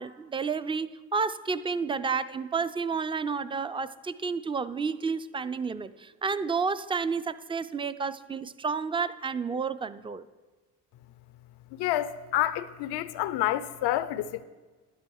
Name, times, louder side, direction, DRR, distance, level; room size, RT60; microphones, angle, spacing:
voice 1, 0.0-10.2, right 5 dB, 15° right, 0.3 m, -31 dB
voice 2, 11.7-14.4, left 13 dB, 90° left, 0.6 m, -29 dB
11.5 x 11.0 x 4.6 m
cardioid pair, 90°, 39 cm